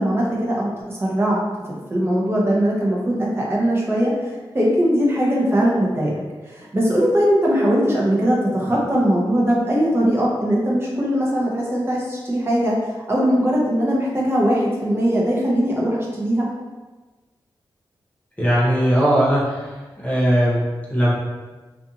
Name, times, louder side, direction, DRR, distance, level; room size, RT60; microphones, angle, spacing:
voice 1, 0.0-1.4 1.7-4.1 4.5-6.1 6.5-12.8 13.1-16.5, equal, 25° right, -4 dB, 0.7 m, -20 dB
voice 2, 18.4-19.7 20.0-20.6 20.9-21.1, equal, 15° left, -7 dB, 1.0 m, -18 dB
2.5 x 2.4 x 2.8 m, 1.3 s
wide cardioid pair, 90°, 9 cm